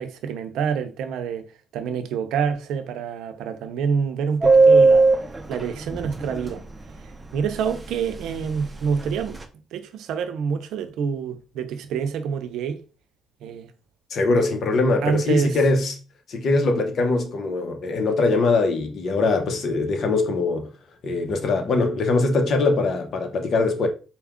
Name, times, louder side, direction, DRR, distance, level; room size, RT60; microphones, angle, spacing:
voice 1, 0.0-1.5 1.7-5.1 5.5-6.6 7.0-9.4 9.7-12.8 13.4-13.7 15.0-15.6, right 6 dB, 85° right, 0.6 m, -27 dB
Subway metro underground, 4.4-6.6 6.9-7.0 7.2-7.4 7.7-8.2 8.4-9.4, right 3 dB, 20° right, 0.7 m, -17 dB
voice 2, 14.1-15.9 16.3-20.7 21.0-23.9, left 3 dB, 60° left, 0.9 m, -22 dB
4.4 x 2.3 x 3.5 m
cardioid pair, 90°, 0 cm